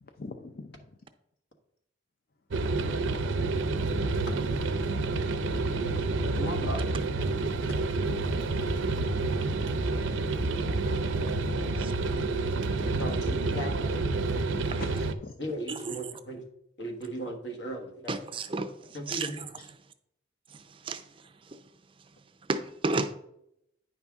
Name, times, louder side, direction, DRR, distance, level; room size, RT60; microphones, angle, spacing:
voice 1, 0.0-0.9 6.3-6.6 7.6-7.8 12.1-12.2 12.8-12.9 14.8-15.4 19.5-19.6, left 3 dB, 50° left, 0.5 m, -44 dB
sound 1, 2.5-15.1, right 3 dB, 90° right, 0.6 m, -29 dB
voice 2, 6.4-6.8 12.9-13.9 15.4-16.5 16.8-18.2 18.9-19.5, right 1 dB, 65° left, 1.3 m, -36 dB
voice 3, 18.1-19.4 20.5-21.7 22.5-23.1, right 3 dB, 25° right, 0.4 m, -33 dB
9.5 x 5.5 x 3.5 m
head